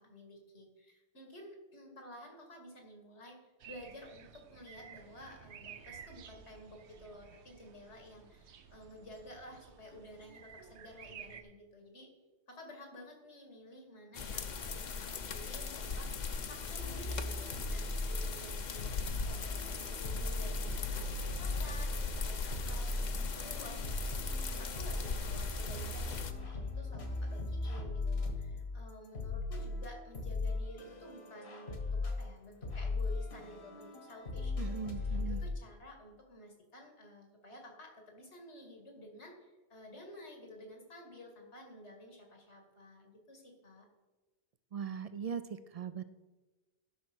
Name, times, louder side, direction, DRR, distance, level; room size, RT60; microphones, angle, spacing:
voice 1, 0.0-12.1 12.5-18.8 19.2-34.6 35.0-43.9, left 1 dB, 85° left, 2 dB, 2.5 m, -52 dB
sound 1, 3.6-11.4, right 8 dB, 80° right, 1.0 m, -54 dB
sound 2, 14.1-26.3, left 4 dB, 45° left, 0.7 m, -39 dB
sound 3, 16.8-18.5 18.8-35.5, left 2 dB, 70° left, 1.7 m, -38 dB
voice 2, 34.6-35.4 44.7-46.0, right 7 dB, 60° right, 12 dB, 0.4 m, -40 dB
12.0 x 5.7 x 6.1 m, 1.2 s
omnidirectional pair, 1.1 m